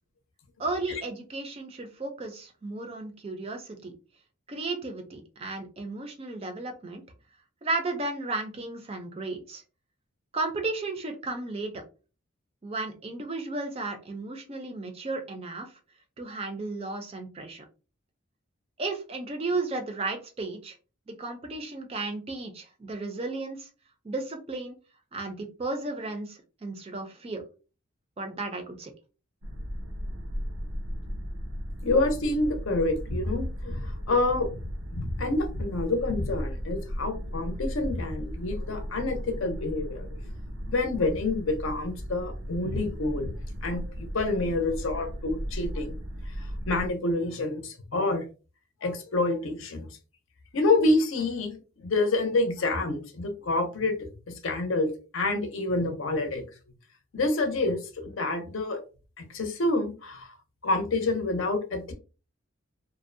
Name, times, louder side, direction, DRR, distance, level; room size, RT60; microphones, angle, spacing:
voice 1, 0.6-3.9 4.5-7.0 7.6-9.6 10.3-11.8 12.6-15.7 16.2-17.6 18.8-20.8 21.1-23.7 24.0-24.8 25.1-27.4 28.2-28.9, right 3 dB, 30° right, 5 dB, 0.4 m, -34 dB
sound 1, 29.4-46.9, equal, 90° right, 0.5 m, -36 dB
voice 2, 31.8-34.6 34.9-40.2 40.7-43.3 43.6-46.0 46.4-48.2 48.8-49.9 50.5-56.4 57.1-58.8 59.2-60.3 60.6-61.9, left 2 dB, 75° left, 6 dB, 0.6 m, -28 dB
2.5 x 2.0 x 2.5 m, 0.34 s
head